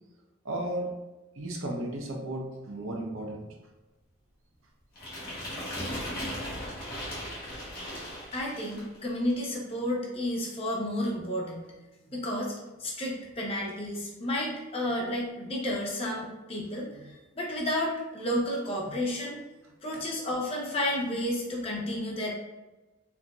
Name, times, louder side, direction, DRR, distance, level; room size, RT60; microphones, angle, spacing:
voice 1, 0.4-0.9 1.3-3.6 12.1-12.2 18.9-19.0 19.9-20.0, right 1 dB, 75° right, 0 dB, 0.7 m, -35 dB
sound 1, 5.0-9.0, equal, 45° left, 1.4 m, -37 dB
voice 2, 8.3-11.6 12.1-12.5 12.8-19.4 19.8-22.3, left 1 dB, 30° left, -2 dB, 0.6 m, -31 dB
4.5 x 2.6 x 2.3 m, 1.1 s
head